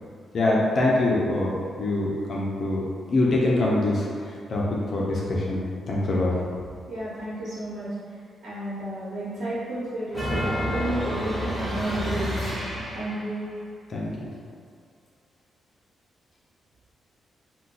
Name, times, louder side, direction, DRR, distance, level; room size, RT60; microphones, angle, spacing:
voice 1, 0.3-6.4 13.9-14.3, left 2 dB, 55° left, -4 dB, 0.5 m, -24 dB
voice 2, 6.9-7.9 8.4-12.5 12.9-13.4, right 1 dB, 85° right, -11 dB, 0.9 m, -32 dB
sound 1, 10.1-13.3, equal, ahead, 1.4 m, -29 dB
2.6 x 2.2 x 3.7 m, 2.1 s
cardioid pair, 95°, 0 cm